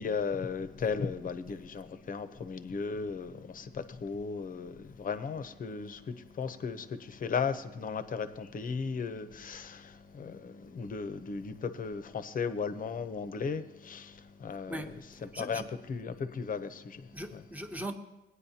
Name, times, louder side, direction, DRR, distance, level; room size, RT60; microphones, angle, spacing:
voice 1, 0.0-14.8 15.2-15.6 15.9-17.4, left 5 dB, 45° left, 0.7 m, -36 dB
voice 2, 14.7-15.7 17.1-17.9, right 1 dB, 10° right, 1.0 m, -40 dB
18.0 x 9.6 x 2.8 m
cardioid pair, 90°, 20 cm